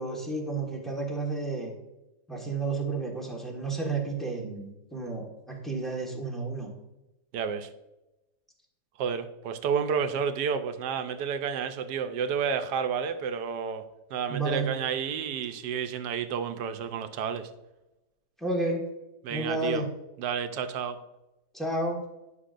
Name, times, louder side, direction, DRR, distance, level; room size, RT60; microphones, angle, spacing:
voice 1, 0.0-1.7 2.3-6.7 14.3-14.8 18.4-18.8 19.3-19.9 21.5-22.0, right 3 dB, ahead, -1 dB, 1.3 m, -31 dB
voice 2, 7.3-7.7 9.0-13.8 14.1-17.5 19.2-19.8 20.2-21.0, right 7 dB, 85° right, 8 dB, 1.3 m, -30 dB
9.8 x 5.9 x 2.5 m, 0.95 s
omnidirectional pair, 1.8 m